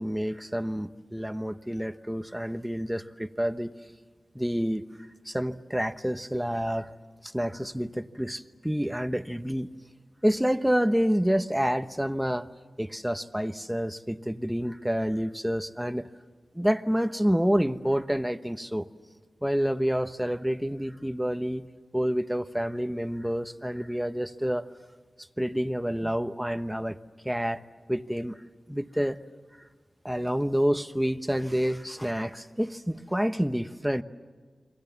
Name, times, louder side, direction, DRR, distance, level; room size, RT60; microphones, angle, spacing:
voice 1, 0.0-3.7 4.3-4.8 5.2-6.9 7.2-9.7 10.2-12.5 12.8-16.1 16.5-18.9 19.4-21.7 21.9-24.6 25.4-27.0 27.2-27.6 27.9-28.4 28.7-29.2 30.0-34.0, equal, 5° right, 10 dB, 1.0 m, -28 dB
29.5 x 24.0 x 7.3 m, 1.5 s
cardioid pair, 55°, 0 cm